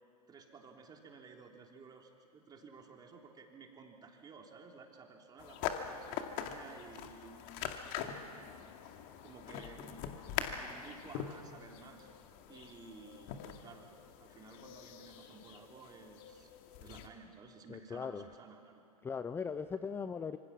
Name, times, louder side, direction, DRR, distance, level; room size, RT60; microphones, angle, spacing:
voice 1, 0.3-8.6 9.2-10.0 10.5-12.1 12.5-16.5 16.8-18.8, right 4 dB, 20° right, 2 dB, 3.3 m, -55 dB
sound 1, 5.4-17.1, left 9 dB, 45° left, 2.2 m, -43 dB
voice 2, 17.7-18.3 19.0-20.4, left 6 dB, 10° left, 12 dB, 0.6 m, -39 dB
26.0 x 26.0 x 6.0 m, 2.4 s
figure-of-eight pair, 105°, 20 cm